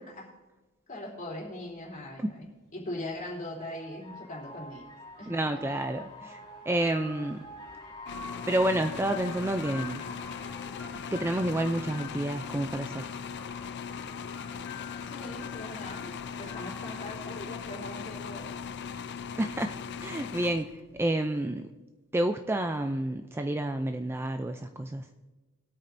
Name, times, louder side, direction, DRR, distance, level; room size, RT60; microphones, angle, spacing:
voice 1, 0.9-2.4 2.7-4.8 5.2-5.4 15.1-18.6, left 1 dB, 35° left, -3 dB, 3.3 m, -40 dB
sound 1, 1.4-1.5 2.9-18.5, left 2 dB, 20° left, 3.8 m, -46 dB
voice 2, 5.3-6.4 6.7-7.4 8.5-10.0 11.1-13.1 19.4-19.7 20.0-21.7 22.1-25.0, right 1 dB, 10° right, 6 dB, 0.4 m, -29 dB
sound 2, 8.1-21.1, left 6 dB, 50° left, 0.5 m, -39 dB
21.5 x 8.5 x 2.6 m, 1.2 s
head